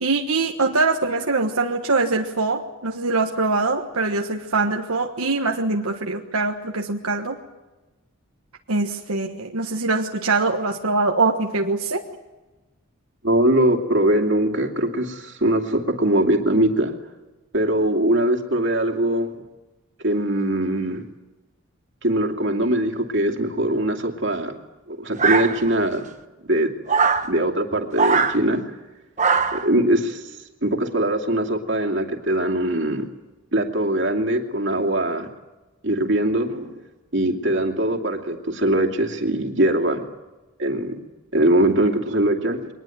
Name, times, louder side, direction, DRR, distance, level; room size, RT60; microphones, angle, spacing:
voice 1, 0.0-7.4 8.7-12.0, right 3 dB, 85° right, 2 dB, 1.4 m, -23 dB
voice 2, 13.2-16.9 17.5-19.4 20.0-21.0 22.0-24.6 24.9-26.0 26.4-26.7 27.2-28.6 29.5-30.3 30.6-33.1 33.5-35.3 35.8-36.8 37.1-40.0 40.6-41.0 41.3-42.7, right 1 dB, 55° right, 3 dB, 2.6 m, -21 dB
sound 1, 25.2-25.9 26.9-27.3 27.9-28.4 29.2-29.7, right 5 dB, 35° right, 1.2 m, -20 dB
23.0 x 20.0 x 9.3 m, 1.1 s
head